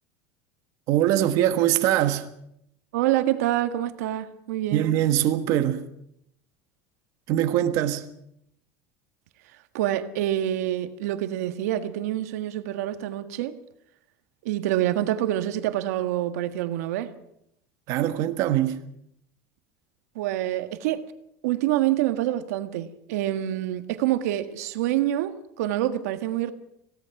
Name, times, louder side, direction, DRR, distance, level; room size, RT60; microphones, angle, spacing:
voice 1, 0.9-2.2 4.7-5.9 7.3-8.0 17.9-18.8, right 12 dB, 45° right, 1.6 m, -22 dB
voice 2, 2.9-4.8 9.7-13.5 14.4-17.1 20.1-21.0 21.4-26.5, right 13 dB, 90° right, 1.7 m, -26 dB
25.5 x 17.5 x 6.0 m
cardioid pair, 175°, 8 cm